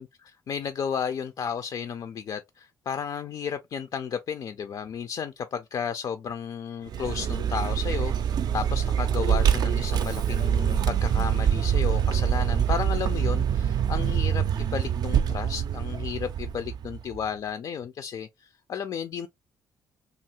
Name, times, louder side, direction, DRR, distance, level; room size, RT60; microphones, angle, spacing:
voice 1, 0.5-19.3, left 7 dB, 55° left, 0.3 m, -33 dB
Vehicle, 6.9-17.2, right 8 dB, 60° right, 0.4 m, -25 dB
2.6 x 2.4 x 2.9 m
supercardioid pair, 70°, 8 cm